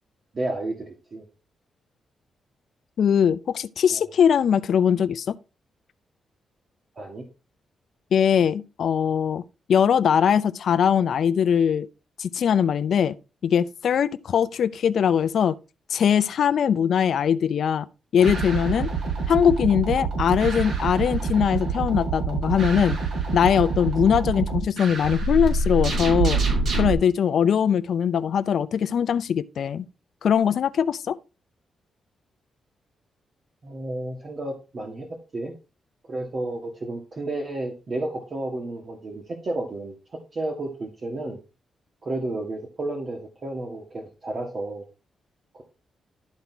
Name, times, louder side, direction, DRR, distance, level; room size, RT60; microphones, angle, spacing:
voice 1, 0.3-1.2 3.9-4.0 6.9-7.3 33.6-35.1 35.3-35.5 36.1-41.4 42.0-44.8 45.5-45.6, right 2 dB, 45° right, 1.7 m, -32 dB
voice 2, 3.0-5.4 8.1-9.4 9.7-11.9 12.2-13.1 13.4-15.6 15.9-17.9 18.1-18.9 19.3-23.0 23.3-26.4 26.7-29.9 30.2-31.2, left 8 dB, 70° left, 0.5 m, -21 dB
sound 1, 18.2-26.9, right 4 dB, 70° right, 4.1 m, -26 dB
11.5 x 4.1 x 4.5 m
cardioid pair, 85°, 0 cm